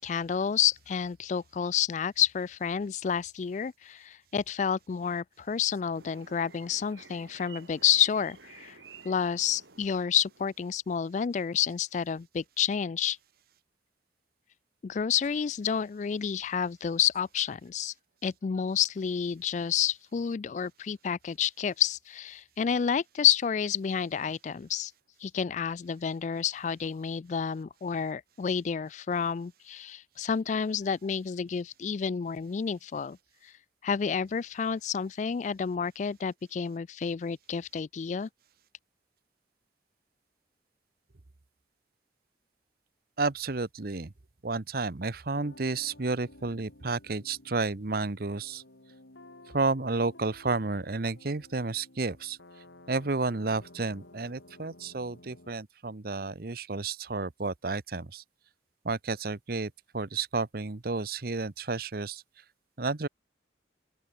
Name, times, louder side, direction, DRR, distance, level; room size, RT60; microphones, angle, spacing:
voice 1, 0.0-8.8 9.0-13.2 14.8-17.9 18.2-24.9 25.2-33.2 33.4-33.5 33.8-38.3, left 7 dB, 40° left, 0.3 m, -29 dB
sound 1, 5.9-10.8, right 5 dB, 80° right, 2.9 m, -53 dB
voice 2, 43.2-44.1 44.4-48.6 49.5-52.4 52.9-58.2 58.8-62.2 62.8-63.1, right 3 dB, 55° right, 0.9 m, -31 dB
sound 2, 45.3-55.5, left 2 dB, 85° left, 3.0 m, -54 dB
open air
head